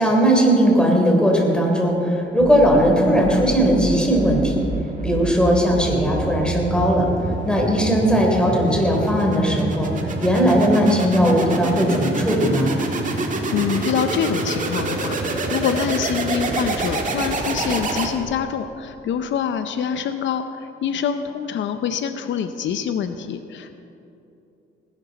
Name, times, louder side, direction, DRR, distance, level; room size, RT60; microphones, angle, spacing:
voice 1, 0.0-4.7 5.0-7.1 7.4-9.9 10.2-12.7, equal, 5° left, -1 dB, 3.6 m, -18 dB
sound 1, 2.4-18.5, right 3 dB, 40° right, 1.8 m, -27 dB
voice 2, 13.1-15.2 15.5-23.8, left 7 dB, 70° left, 9 dB, 0.7 m, -25 dB
18.5 x 11.5 x 4.1 m, 2.8 s
cardioid pair, 90°, 20 cm